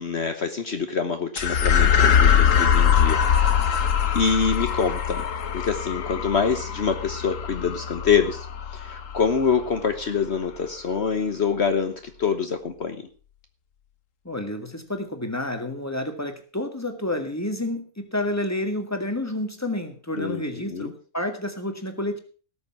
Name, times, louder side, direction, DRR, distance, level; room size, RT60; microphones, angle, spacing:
voice 1, 0.0-5.2 5.5-8.5 8.7-13.1 20.2-20.9, left 6 dB, 55° left, 7 dB, 1.4 m, -26 dB
sound 1, 1.4-10.0, left 8 dB, 70° left, 1.4 m, -22 dB
voice 2, 14.3-22.2, left 1 dB, 10° left, 6 dB, 1.9 m, -29 dB
18.0 x 7.1 x 5.8 m, 0.38 s
omnidirectional pair, 1.4 m